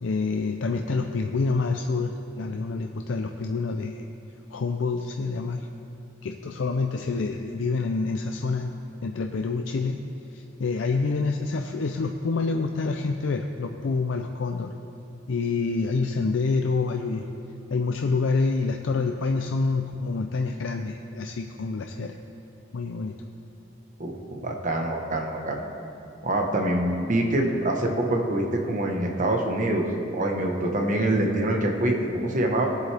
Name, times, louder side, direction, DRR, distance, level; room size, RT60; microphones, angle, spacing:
voice 1, 0.0-4.0 4.5-5.7 6.2-8.7 9.0-10.0 10.3-14.7 15.3-17.3 17.7-22.2 22.7-23.2, left 4 dB, 75° left, 5 dB, 0.5 m, -27 dB
voice 2, 24.0-25.6 26.2-29.8 30.1-32.7, right 1 dB, 40° right, 1 dB, 1.3 m, -25 dB
18.0 x 7.8 x 3.4 m, 2.7 s
head